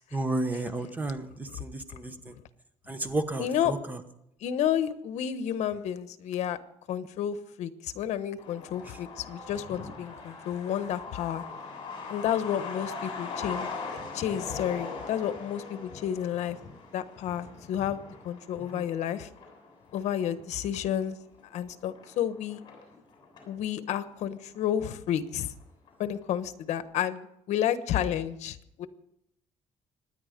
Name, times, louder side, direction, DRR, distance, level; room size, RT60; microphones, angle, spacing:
voice 1, 0.1-2.3 2.9-4.0 18.7-18.8, right 2 dB, 15° right, 9 dB, 1.2 m, -32 dB
voice 2, 3.4-3.7 4.4-6.6 6.9-11.4 12.1-13.7 14.1-16.6 16.9-19.3 19.9-21.2 21.5-22.6 23.5-25.5 26.0-28.9, left 10 dB, 75° left, 12 dB, 1.2 m, -31 dB
Truck, 8.4-23.6 23.9-24.0 24.2-25.1 25.4-25.5 25.9-26.2, left 4 dB, 40° left, 7.1 m, -41 dB
25.5 x 10.0 x 5.2 m, 0.79 s
cardioid pair, 150°, 12 cm